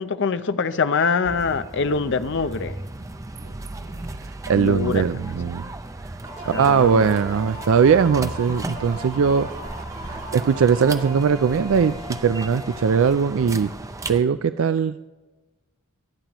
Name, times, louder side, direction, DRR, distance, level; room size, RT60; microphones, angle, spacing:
voice 1, 0.0-2.8 4.5-5.0 6.4-7.0, left 5 dB, 55° left, 12 dB, 0.6 m, -24 dB
sound 1, 1.2-14.2, right 2 dB, 15° right, 0.5 m, -35 dB
voice 2, 4.2-5.7 6.5-9.5 10.1-13.7 14.1-15.0, right 6 dB, 65° right, 12 dB, 0.4 m, -20 dB
sound 2, 6.2-13.8, right 1 dB, 40° right, 2.8 m, -38 dB
24.0 x 8.9 x 3.0 m, 1.2 s
head